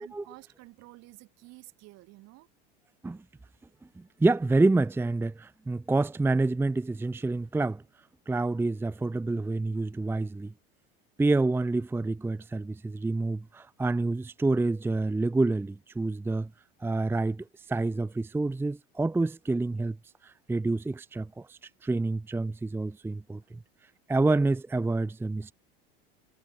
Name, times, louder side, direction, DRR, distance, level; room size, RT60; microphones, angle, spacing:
voice 1, 0.0-2.5, right 20 dB, 55° right, 3.3 m, -51 dB
voice 2, 4.2-7.8 8.3-10.5 11.2-16.5 16.8-20.0 20.2-23.4 24.1-25.5, right 2 dB, 5° right, 0.7 m, -28 dB
hypercardioid pair, 95°, 31 cm